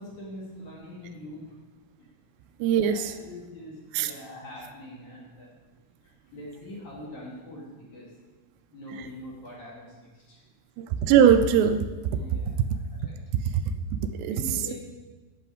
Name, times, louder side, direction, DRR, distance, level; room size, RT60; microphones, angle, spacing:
voice 1, 0.0-1.4 2.7-5.5 6.0-8.1 8.7-10.4 12.2-13.2 14.3-14.7, left 1 dB, 50° left, -4 dB, 3.0 m, -43 dB
voice 2, 2.6-3.1 3.9-4.1 10.8-11.9 14.1-14.4, right 8 dB, 85° right, 9 dB, 2.7 m, -20 dB
11.0 x 7.7 x 4.8 m, 1.2 s
omnidirectional pair, 5.0 m